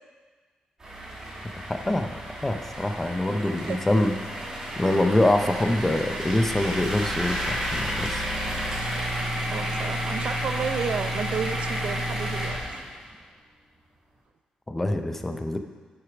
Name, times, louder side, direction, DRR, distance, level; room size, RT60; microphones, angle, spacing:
sound 1, 0.8-13.1, equal, 25° right, 2.1 m, -31 dB
voice 1, 1.7-2.1 2.4-4.1 4.8-8.2 14.7-15.6, left 1 dB, 10° left, 6 dB, 0.5 m, -24 dB
voice 2, 9.5-12.6, right 6 dB, 55° right, 8 dB, 0.4 m, -31 dB
8.0 x 6.5 x 5.0 m, 1.5 s
wide cardioid pair, 165°, 3 cm